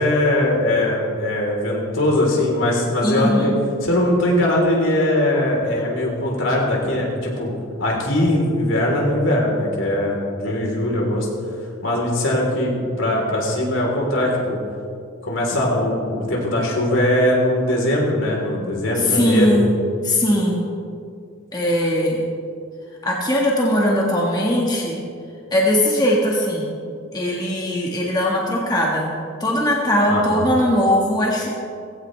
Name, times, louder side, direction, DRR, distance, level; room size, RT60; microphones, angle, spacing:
voice 1, 0.0-3.5 3.8-7.5 7.8-11.3 11.8-14.6 15.2-19.6 30.1-30.4, left 1 dB, 75° left, -2 dB, 3.6 m, -20 dB
voice 2, 3.0-3.5 19.0-20.7 21.5-22.3 23.0-25.0 25.5-26.7 27.1-29.1 29.4-31.5, equal, 20° left, -3 dB, 1.6 m, -20 dB
18.0 x 16.0 x 3.3 m, 2.4 s
head